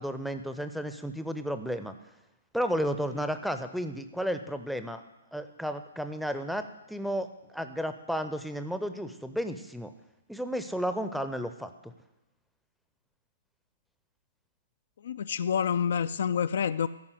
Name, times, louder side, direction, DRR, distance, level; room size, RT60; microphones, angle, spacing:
voice 1, 0.0-1.9 2.5-5.0 5.3-9.9 10.3-11.9, equal, ahead, 9 dB, 0.6 m, -33 dB
voice 2, 15.0-16.9, left 7 dB, 50° left, 13 dB, 0.3 m, -28 dB
13.5 x 5.5 x 8.2 m, 0.95 s
figure-of-eight pair, 125°, 0 cm